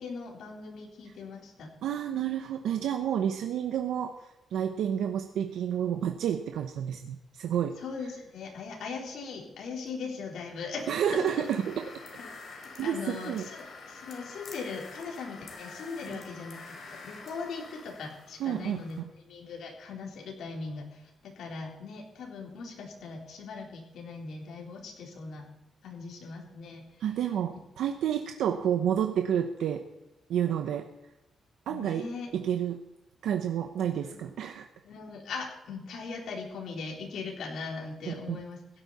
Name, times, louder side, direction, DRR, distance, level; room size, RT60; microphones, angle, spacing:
voice 1, 0.0-1.7 7.8-11.3 12.2-12.4 12.8-16.6 16.9-25.5 25.8-26.8 31.7-32.3 34.0-34.2 34.8-38.6, left 4 dB, 75° left, -1 dB, 3.9 m, -40 dB
voice 2, 1.8-7.8 10.9-11.9 12.8-13.5 16.1-16.2 18.4-19.1 27.0-29.8 30.3-30.9 31.7-32.1 32.3-32.8 33.2-34.7 38.1-38.4, right 9 dB, 90° right, 5 dB, 0.9 m, -30 dB
sound 1, 10.8-19.0, left 4 dB, 50° left, 4.1 m, -47 dB
16.5 x 12.0 x 4.2 m, 0.96 s
cardioid pair, 135°, 0 cm